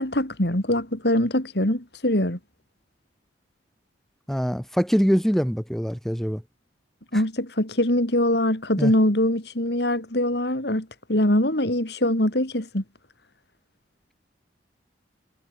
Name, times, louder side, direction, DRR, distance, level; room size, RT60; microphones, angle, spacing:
voice 1, 0.0-2.4 7.1-12.8, left 1 dB, 60° left, 3.9 m, -23 dB
voice 2, 4.3-6.4 7.1-7.2 8.8-8.9, equal, ahead, 2.8 m, -23 dB
head